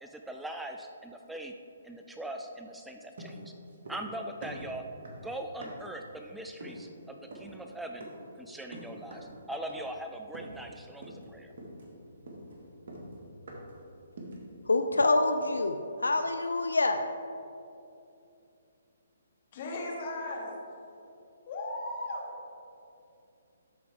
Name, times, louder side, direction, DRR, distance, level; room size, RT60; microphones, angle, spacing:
voice 1, 0.0-1.5 1.8-3.5 3.9-4.8 5.2-8.1 8.4-11.5, right 1 dB, 5° right, 4 dB, 0.3 m, -41 dB
sound 1, 3.2-4.1 4.4-6.0 6.6-6.9 7.3-7.6 8.0-8.3 8.7-9.4 9.7-10.0 10.3-10.7 11.0-11.3 11.6-13.8 14.2-14.5, right 1 dB, 60° right, 1.8 m, -45 dB
voice 2, 14.7-17.0, left 2 dB, 90° left, 7 dB, 0.4 m, -26 dB
voice 3, 19.5-20.5 21.5-22.3, left 2 dB, 45° left, -2 dB, 1.9 m, -36 dB
13.0 x 4.5 x 3.6 m, 2.7 s
hypercardioid pair, 140°, 0 cm